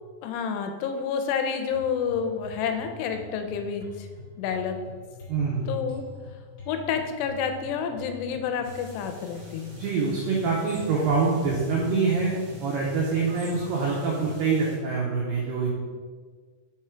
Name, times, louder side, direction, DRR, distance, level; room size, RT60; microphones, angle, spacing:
voice 1, 0.2-4.1 4.4-4.8 5.7-6.0 6.7-9.7, left 6 dB, 85° left, 6 dB, 2.7 m, -29 dB
sound 1, 1.7-14.3, left 3 dB, 55° left, 1.3 m, -45 dB
voice 2, 5.3-5.7 9.7-15.7, right 4 dB, 85° right, -4 dB, 1.9 m, -25 dB
sound 2, 8.6-14.8, right 1 dB, 65° right, 1.5 m, -49 dB
6.0 x 3.7 x 4.3 m, 1.5 s
omnidirectional pair, 5.0 m